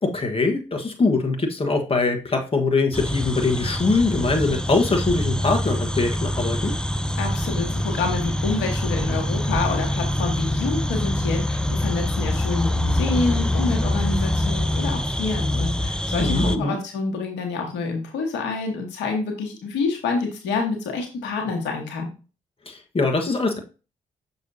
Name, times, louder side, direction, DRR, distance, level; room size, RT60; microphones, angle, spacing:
voice 1, 0.0-6.7 16.2-16.8 22.6-23.6, left 3 dB, 30° left, 2 dB, 1.4 m, -22 dB
sound 1, 2.9-16.6, left 1 dB, 5° left, 0.6 m, -24 dB
voice 2, 7.2-22.1, left 4 dB, 80° left, 3 dB, 1.3 m, -27 dB
6.3 x 5.4 x 2.7 m, 0.33 s
hypercardioid pair, 40°, 18 cm